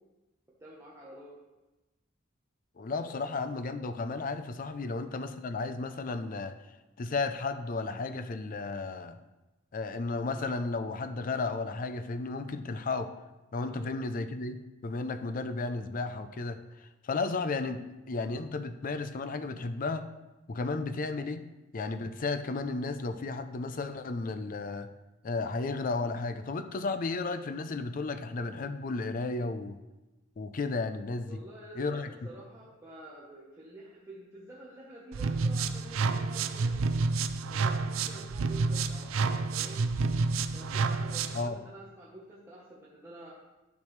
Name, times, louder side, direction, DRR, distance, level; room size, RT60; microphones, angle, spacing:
voice 1, 0.6-1.4 3.0-3.1 4.7-4.9 13.6-13.9 31.2-36.8 37.4-39.8 40.5-43.3, right 1 dB, 15° right, -7 dB, 1.1 m, -49 dB
voice 2, 2.8-6.6 7.0-9.2 9.7-13.1 13.5-16.6 17.0-17.8 18.1-20.1 20.5-21.4 21.7-24.9 25.2-29.8 30.4-31.4 31.8-32.1 41.3-41.6, left 3 dB, 45° left, 10 dB, 0.5 m, -33 dB
sound 1, 35.1-41.5, right 4 dB, 85° right, 0.4 m, -29 dB
10.5 x 6.1 x 3.2 m, 1.1 s
head